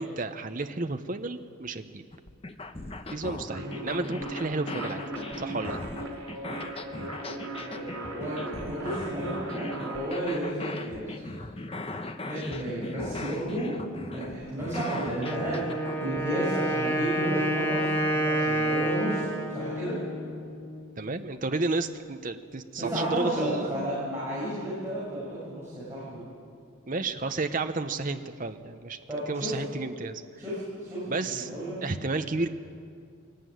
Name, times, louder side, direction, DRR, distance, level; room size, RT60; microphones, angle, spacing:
voice 1, 0.0-2.0 3.1-5.0 5.4-5.8 21.0-23.9 26.9-29.0 29.3-30.4 31.1-31.5 31.8-32.5, right 3 dB, 40° right, 8 dB, 0.8 m, -32 dB
sound 1, 2.1-16.3, left 2 dB, 25° left, 0.9 m, -39 dB
sound 2, 3.5-10.1, right 1 dB, 90° right, 4.6 m, -37 dB
voice 2, 7.6-11.2 12.3-13.7 14.1-19.9 22.8-26.2 29.1-29.5 30.4-31.8, equal, 10° right, -11 dB, 6.6 m, -32 dB
Wind instrument woodwind instrument, 15.2-20.9, right 1 dB, 10° left, 1.6 m, -29 dB
21.0 x 18.0 x 9.3 m, 2.4 s
head